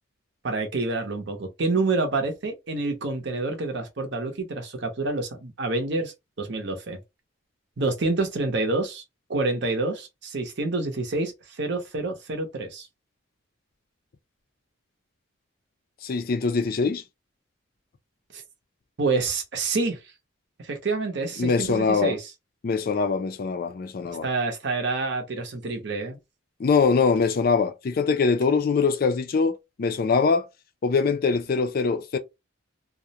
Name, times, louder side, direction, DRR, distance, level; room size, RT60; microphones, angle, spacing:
voice 1, 0.4-7.0 7.8-9.0 9.3-12.9 18.3-18.4 19.0-20.0 20.6-22.3 24.2-26.2, right 3 dB, 55° right, 0.7 m, -27 dB
voice 2, 16.0-17.0 21.4-22.2 22.6-24.3 26.6-30.5 30.8-32.2, left 5 dB, 45° left, 0.3 m, -23 dB
2.3 x 2.0 x 2.8 m
head